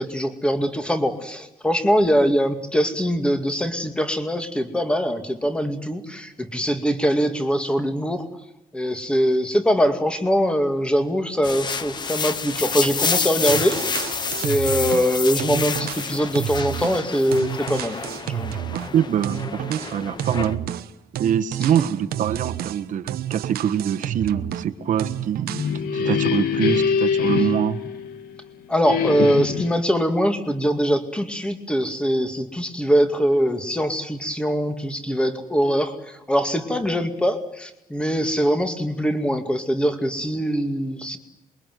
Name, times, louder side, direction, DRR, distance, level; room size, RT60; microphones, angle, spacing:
voice 1, 0.0-8.2 8.7-14.1 14.4-18.0 18.2-18.5 28.7-41.2, equal, 5° left, 7 dB, 2.3 m, -22 dB
sound 1, 11.4-20.6, left 5 dB, 30° left, 1.2 m, -29 dB
sound 2, 13.5-15.1 15.4-18.9 19.2-24.7 25.0-25.8, right 12 dB, 85° right, 1.2 m, -31 dB
voice 2, 18.7-20.6 21.2-25.6 25.9-27.8, right 9 dB, 55° right, 7 dB, 1.5 m, -24 dB
sound 3, 25.3-28.4 28.8-29.8, left 6 dB, 80° left, 2.3 m, -24 dB
27.5 x 22.5 x 9.4 m, 0.90 s
cardioid pair, 175°, 15 cm